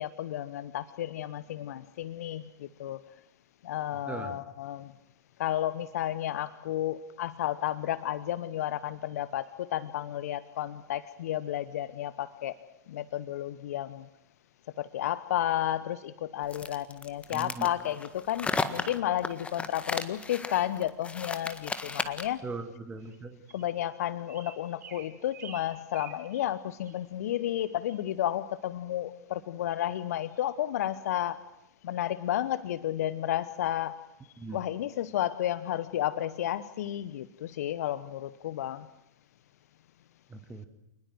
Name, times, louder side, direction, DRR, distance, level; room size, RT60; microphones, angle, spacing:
voice 1, 0.0-3.0 3.6-4.9 5.4-12.6 12.9-14.1 14.8-22.4 23.5-31.4 31.8-34.1 34.5-38.9, left 12 dB, 60° left, 16 dB, 0.8 m, -32 dB
voice 2, 4.1-4.4 17.3-17.7 22.4-23.4 34.4-34.6 40.3-40.7, right 4 dB, 15° right, 7 dB, 1.8 m, -39 dB
sound 1, 16.5-22.4, left 4 dB, 15° left, 1.6 m, -35 dB
sound 2, 21.2-21.4 22.3-22.4 23.0-23.2 23.5-23.7 24.3-26.5 26.8-27.0 27.4-27.6 27.9-28.0, right 7 dB, 70° right, 5.4 m, -49 dB
28.0 x 20.5 x 7.7 m, 0.85 s
hypercardioid pair, 105°, 9 cm